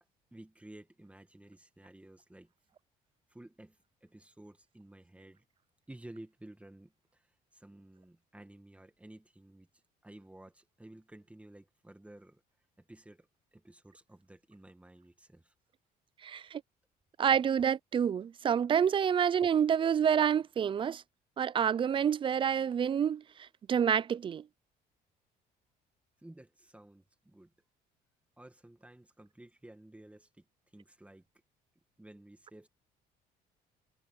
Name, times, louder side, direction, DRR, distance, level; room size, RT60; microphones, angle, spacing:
voice 1, 0.3-2.5 3.3-5.4 5.9-9.7 10.0-12.4 12.8-15.5 26.2-27.5 28.4-30.5 30.7-31.3 32.0-32.7, right 1 dB, 5° right, 1.9 m, -54 dB
voice 2, 16.2-16.6 17.2-21.0 21.4-24.4, right 8 dB, 30° right, 0.4 m, -28 dB
cardioid pair, 110°, 17 cm